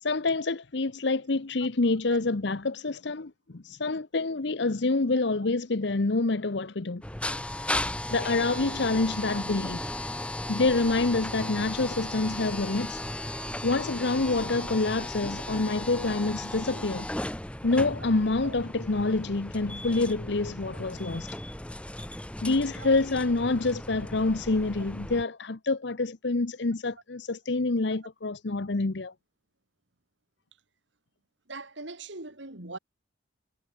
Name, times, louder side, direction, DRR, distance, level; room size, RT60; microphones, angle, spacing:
voice 1, 0.0-7.0 8.1-9.9 10.5-13.0 13.6-17.1 17.6-21.3 22.4-29.1, left 3 dB, 60° left, 0.9 m, -27 dB
sound 1, 7.0-25.2, left 1 dB, 5° left, 0.9 m, -36 dB
voice 2, 31.5-32.8, right 3 dB, 70° right, 3.5 m, -41 dB
head